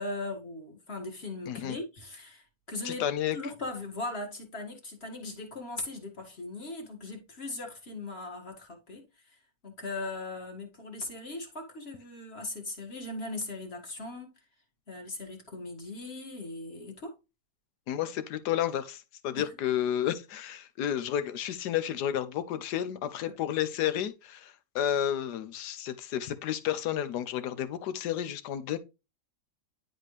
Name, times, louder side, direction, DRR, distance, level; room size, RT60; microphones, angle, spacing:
voice 1, 0.0-3.0 3.3-9.0 9.6-14.3 14.9-17.1 19.5-19.6 23.3-23.4, left 2 dB, 40° left, 2.0 m, -39 dB
voice 2, 1.5-1.8 2.8-3.4 17.9-28.8, left 10 dB, 85° left, 1.3 m, -31 dB
10.0 x 4.2 x 3.2 m
omnidirectional pair, 1.8 m